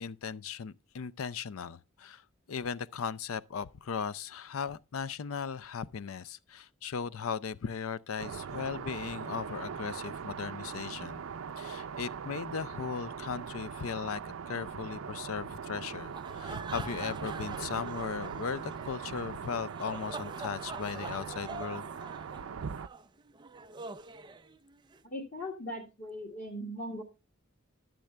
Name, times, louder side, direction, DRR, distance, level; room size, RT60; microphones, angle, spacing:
voice 1, 0.0-2.2 2.5-11.2 11.6-14.2 14.5-21.9, left 6 dB, 85° left, 0.5 m, -37 dB
sound 1, 8.2-22.9, right 6 dB, 80° right, 0.5 m, -41 dB
sound 2, 16.0-25.0, right 3 dB, 20° right, 0.4 m, -45 dB
voice 2, 25.0-27.0, equal, 40° left, 1.8 m, -39 dB
12.0 x 7.6 x 3.3 m
head